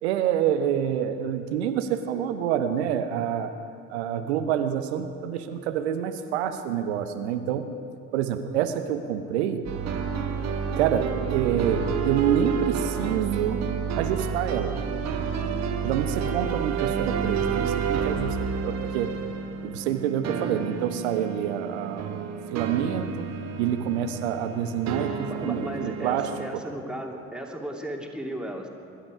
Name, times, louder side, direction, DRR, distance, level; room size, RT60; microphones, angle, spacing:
voice 1, 0.0-3.5 3.9-7.7 8.1-9.6 10.8-13.7 14.0-14.8 15.8-19.2 19.6-23.2 23.6-26.6, right 9 dB, 70° right, 8 dB, 0.9 m, -27 dB
sound 1, 9.7-26.5, right 6 dB, 50° right, 1.3 m, -30 dB
voice 2, 25.2-28.7, right 1 dB, 5° right, 0 dB, 2.6 m, -35 dB
23.5 x 12.0 x 5.0 m, 2.6 s
figure-of-eight pair, 45°, 34 cm